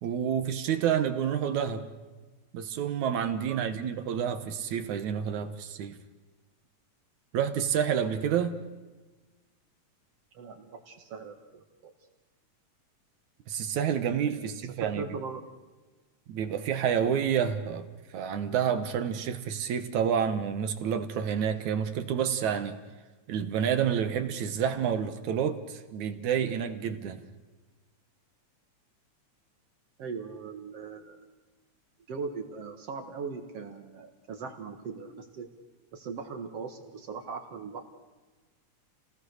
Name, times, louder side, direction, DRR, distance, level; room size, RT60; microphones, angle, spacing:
voice 1, 0.0-1.9 2.5-6.0 7.3-8.6 13.5-15.0 16.3-17.9 18.1-22.8 23.3-27.2, right 8 dB, 75° right, 9 dB, 2.6 m, -29 dB
voice 2, 10.3-11.9 14.3-15.4 30.0-31.2 32.1-35.5 35.9-37.9, right 5 dB, 55° right, 5 dB, 2.4 m, -40 dB
29.5 x 18.5 x 6.6 m, 1.3 s
omnidirectional pair, 3.5 m